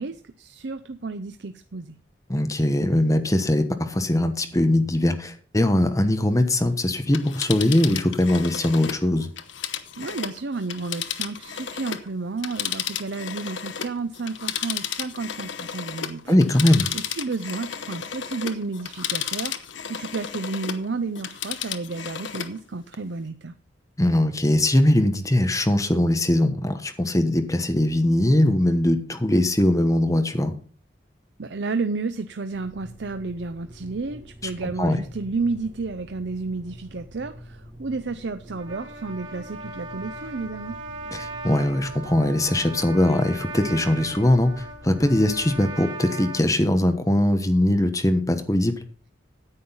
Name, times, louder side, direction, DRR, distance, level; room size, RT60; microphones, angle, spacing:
voice 1, 0.0-2.0 10.0-16.4 16.9-19.5 19.9-23.5 31.4-40.8, right 3 dB, 65° right, 10 dB, 0.6 m, -31 dB
voice 2, 2.3-9.3 16.3-16.9 24.0-30.5 34.8-35.0 41.1-48.8, left 1 dB, 20° left, 8 dB, 1.1 m, -21 dB
Telephone, 7.0-12.1 12.4-20.9 21.2-22.6 22.9-23.0, left 8 dB, 80° left, 1.0 m, -33 dB
sound 1, 32.5-45.8, equal, 20° right, 4.1 m, -45 dB
Trumpet, 38.5-46.5, right 2 dB, 80° right, 2.9 m, -38 dB
9.9 x 8.7 x 5.6 m, 0.42 s
head